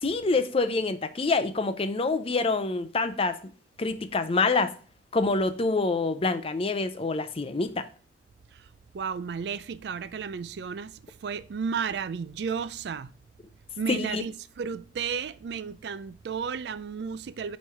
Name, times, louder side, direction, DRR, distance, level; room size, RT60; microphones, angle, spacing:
voice 1, 0.0-3.4 3.8-4.7 5.1-7.8 13.9-14.2, left 3 dB, 35° left, 0.5 m, -26 dB
voice 2, 8.9-13.1 13.8-17.6, right 6 dB, 65° right, 0.4 m, -33 dB
8.3 x 3.2 x 4.4 m
head